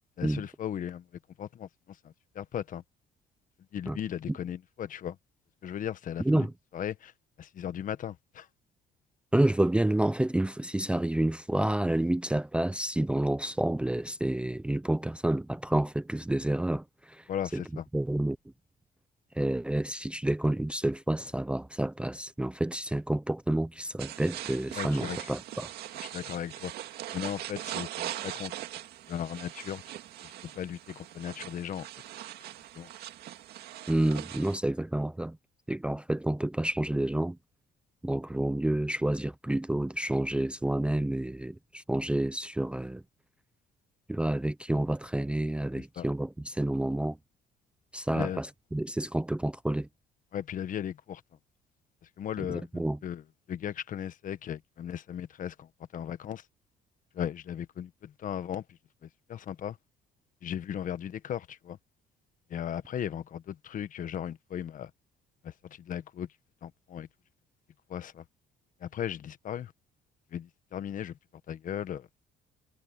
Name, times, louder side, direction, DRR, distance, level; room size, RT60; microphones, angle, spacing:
voice 1, 0.2-1.1 1.4-2.8 3.7-5.2 5.6-6.5 6.7-7.1 7.4-8.5 17.3-17.8 24.7-25.3 26.0-26.7 27.1-28.5 29.1-29.8 30.2-31.8 32.7-32.9 46.0-46.1 48.1-48.4 50.3-51.2 52.2-52.7 53.0-53.2 53.5-56.4 57.1-58.6 59.0-59.8 60.4-61.8 62.5-64.9 65.4-66.3 66.6-67.1 67.9-68.2 68.8-69.7 70.3-71.2 71.5-72.1, left 9 dB, 50° left, 1.3 m, -37 dB
voice 2, 6.2-6.5 9.3-17.6 17.9-18.4 19.3-25.7 33.9-35.4 35.7-37.4 38.0-43.0 44.1-47.2 47.9-49.9 52.4-53.0, right 1 dB, 5° right, 0.6 m, -29 dB
sound 1, 24.0-34.6, right 13 dB, 70° right, 2.1 m, -41 dB
cardioid pair, 110°, 17 cm